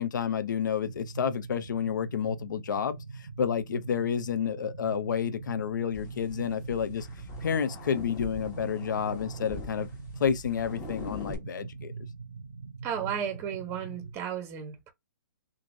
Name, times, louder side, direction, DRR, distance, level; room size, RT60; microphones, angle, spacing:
voice 1, 0.0-7.1 7.4-9.9 10.2-11.9, left 7 dB, 65° left, 0.5 m, -30 dB
sound 1, 0.8-14.1, right 4 dB, 90° right, 0.5 m, -42 dB
sound 2, 5.9-11.4, left 3 dB, 20° left, 1.0 m, -43 dB
voice 2, 12.8-14.9, right 8 dB, 25° right, 0.6 m, -34 dB
2.9 x 2.5 x 2.6 m
figure-of-eight pair, 130°, 11 cm